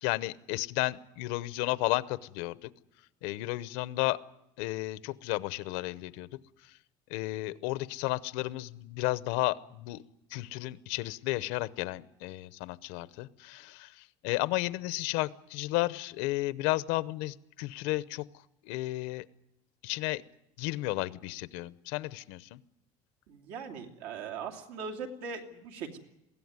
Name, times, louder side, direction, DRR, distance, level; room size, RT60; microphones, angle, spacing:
voice 1, 0.0-2.7 3.2-4.2 4.6-6.3 7.1-10.0 10.3-18.2 18.6-19.2 19.8-20.2 20.6-22.6, left 19 dB, 85° left, 17 dB, 0.8 m, -33 dB
voice 2, 23.3-26.0, right 5 dB, 85° right, 4 dB, 2.7 m, -40 dB
22.0 x 16.5 x 9.6 m, 0.86 s
cardioid pair, 160°, 12 cm